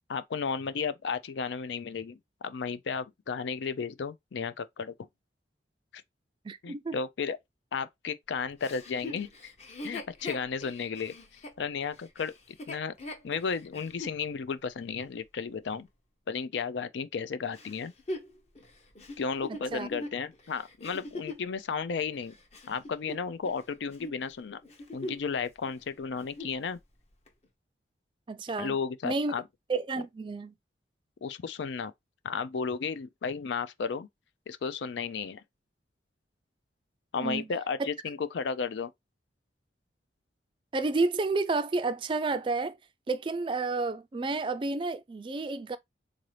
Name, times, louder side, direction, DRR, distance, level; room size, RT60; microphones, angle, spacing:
voice 1, 0.1-4.9 6.6-7.4 7.7-9.5 9.8-11.1 11.6-12.9 13.2-15.9 16.3-17.9 19.2-22.3 22.7-24.6 24.9-26.8 28.6-29.4 31.2-31.9 32.2-34.1 34.5-35.4 37.1-38.9, left 5 dB, 80° left, 0.4 m, -33 dB
voice 2, 6.4-6.9 19.5-19.9 28.3-28.8 29.0-29.3 29.7-30.5 37.2-37.5 40.7-42.8 43.1-45.8, right 3 dB, 30° right, 0.3 m, -30 dB
Chuckle chortle, 8.6-14.2 14.8-14.9 17.5-21.5 22.1-23.6 23.9-24.2 24.6-25.3 25.6-25.7 26.1-26.6 27.3-27.4, left 2 dB, 35° left, 0.8 m, -42 dB
3.8 x 2.7 x 3.2 m
head